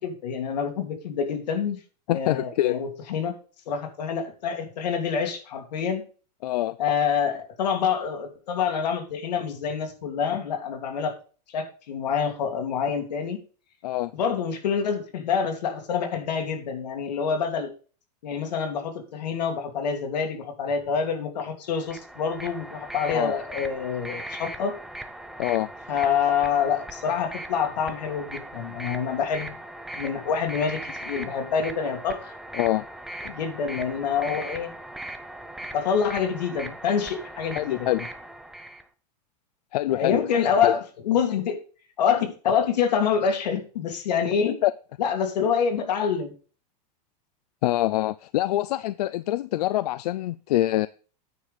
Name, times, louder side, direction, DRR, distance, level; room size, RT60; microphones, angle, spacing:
voice 1, 0.0-1.8 2.1-3.3 3.7-6.0 6.8-11.1 11.5-13.4 14.1-17.7 18.2-24.8 25.9-29.6 30.0-32.3 33.2-34.7 35.7-38.0 39.9-41.6 42.0-44.6 45.0-46.3, left 7 dB, 85° left, 2.4 m, -26 dB
voice 2, 2.1-2.8 6.4-6.8 13.8-14.1 23.1-23.4 25.4-25.7 32.5-32.8 37.5-38.0 39.7-40.7 44.6-44.7 47.6-50.9, left 15 dB, 70° left, 0.4 m, -25 dB
sound 1, 21.7-38.8, right 1 dB, ahead, 0.5 m, -39 dB
9.5 x 4.9 x 5.5 m
supercardioid pair, 160°, 21 cm